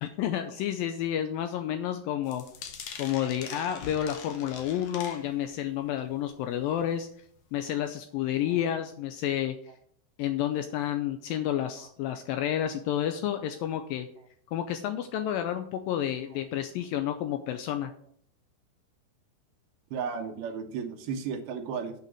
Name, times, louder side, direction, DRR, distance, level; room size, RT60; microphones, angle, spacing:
voice 1, 0.0-2.4 3.0-7.1 7.5-9.6 10.2-14.1 14.5-17.9, left 10 dB, 80° left, 7 dB, 2.1 m, -30 dB
sound 1, 2.3-5.6 6.0-6.3 6.7-6.8 7.1-7.2, left 6 dB, 65° left, 1.7 m, -43 dB
voice 2, 19.9-21.9, right 6 dB, 75° right, 6 dB, 2.9 m, -34 dB
8.7 x 6.0 x 7.7 m, 0.63 s
omnidirectional pair, 4.6 m